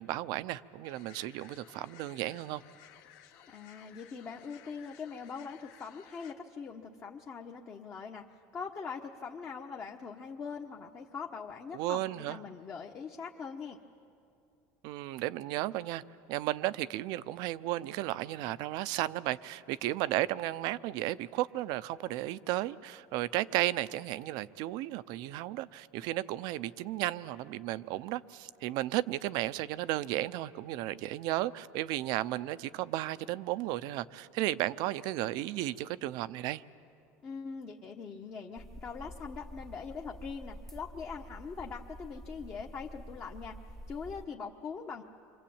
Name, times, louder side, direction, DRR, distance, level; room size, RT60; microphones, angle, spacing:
voice 1, 0.0-2.6 11.7-12.4 14.8-16.0 16.3-36.6, right 16 dB, 65° right, 16 dB, 0.7 m, -34 dB
sound 1, 0.8-6.3, left 10 dB, 65° left, 2.4 m, -57 dB
voice 2, 3.5-8.3 8.5-13.8 37.2-43.6 43.9-45.0, left 5 dB, 30° left, 1 dB, 1.2 m, -42 dB
sound 2, 38.6-44.3, equal, 5° left, 0.8 m, -48 dB
27.5 x 24.5 x 8.7 m, 2.5 s
cardioid pair, 140°, 8 cm